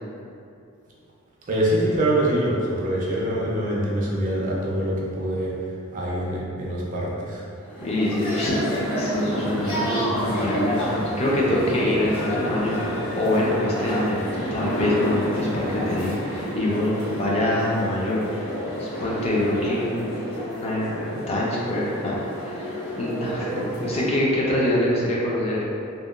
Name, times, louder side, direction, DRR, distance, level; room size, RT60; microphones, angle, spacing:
voice 1, 1.5-5.5 5.9-7.4, right 1 dB, 40° right, -4 dB, 0.4 m, -24 dB
sound 1, 7.6-24.1, equal, 75° left, 1.3 m, -29 dB
voice 2, 7.8-10.9 11.2-18.4 18.8-25.6, left 1 dB, 30° left, -5 dB, 0.4 m, -25 dB
2.8 x 2.1 x 2.3 m, 2.5 s
head